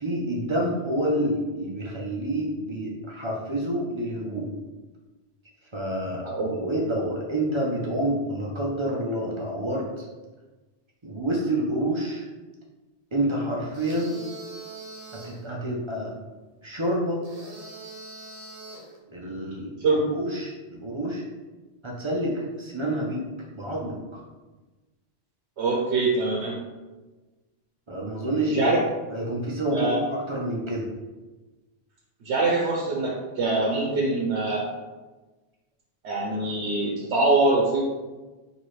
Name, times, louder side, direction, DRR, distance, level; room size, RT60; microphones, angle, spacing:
voice 1, 0.0-4.5 5.7-10.1 11.0-12.3 13.1-14.2 15.1-16.1 16.6-17.2 19.1-21.2 21.8-23.2 23.5-24.2 27.9-28.7 29.1-30.8, right 1 dB, 30° right, -3 dB, 0.6 m, -28 dB
sound 1, 13.7-15.4 17.2-19.0, right 2 dB, 55° right, 1.2 m, -42 dB
voice 2, 25.6-26.6 28.5-28.8 29.7-30.0 32.2-34.6 36.0-37.8, right 3 dB, 90° right, -3 dB, 1.0 m, -24 dB
4.4 x 2.9 x 3.2 m, 1.2 s
omnidirectional pair, 1.1 m